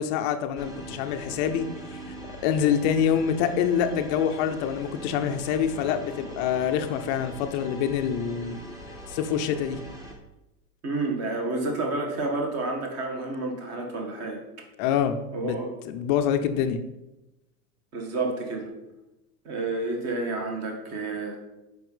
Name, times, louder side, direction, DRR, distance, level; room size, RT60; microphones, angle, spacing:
voice 1, 0.0-2.0 2.4-8.6 9.1-9.8 14.8-15.6 15.8-16.8, left 8 dB, 30° left, 8 dB, 0.4 m, -26 dB
sound 1, 0.6-10.1, right 1 dB, 5° right, 0.8 m, -41 dB
voice 2, 10.8-14.4 15.3-15.7 17.9-18.7 19.4-21.4, right 2 dB, 30° right, 2 dB, 1.7 m, -30 dB
5.8 x 5.4 x 5.4 m, 0.97 s
supercardioid pair, 140°, 47 cm